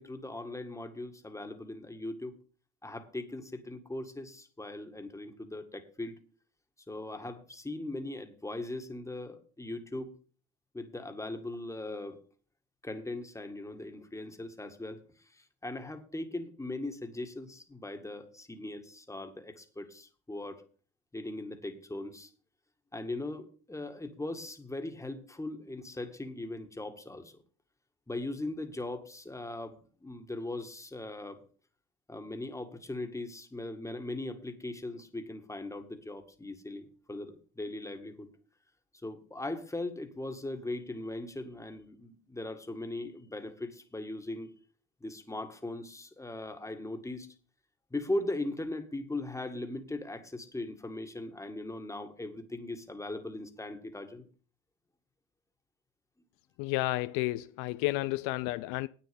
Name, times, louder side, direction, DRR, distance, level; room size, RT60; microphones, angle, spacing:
voice 1, 0.0-2.4 2.8-6.2 6.9-10.1 10.7-12.2 12.8-15.0 15.3-20.6 21.1-22.3 22.9-27.3 28.1-31.4 32.1-38.3 39.0-44.5 45.0-47.3 47.9-54.2, left 2 dB, 10° left, 2.0 m, -39 dB
voice 2, 56.6-58.9, left 19 dB, 65° left, 0.5 m, -31 dB
10.0 x 9.0 x 5.3 m
hypercardioid pair, 70°, 34 cm